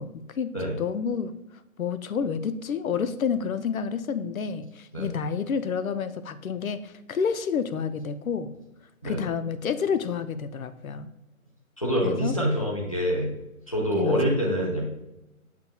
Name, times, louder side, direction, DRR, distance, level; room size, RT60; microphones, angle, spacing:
voice 1, 0.0-0.5 0.8-1.3 1.8-8.5 9.0-11.1 12.0-12.4 14.0-14.3, left 6 dB, 70° left, 12 dB, 0.6 m, -29 dB
voice 2, 11.8-13.3 13.7-14.9, equal, 25° left, -2 dB, 0.9 m, -25 dB
7.4 x 5.9 x 2.3 m, 0.93 s
hypercardioid pair, 180°, 43 cm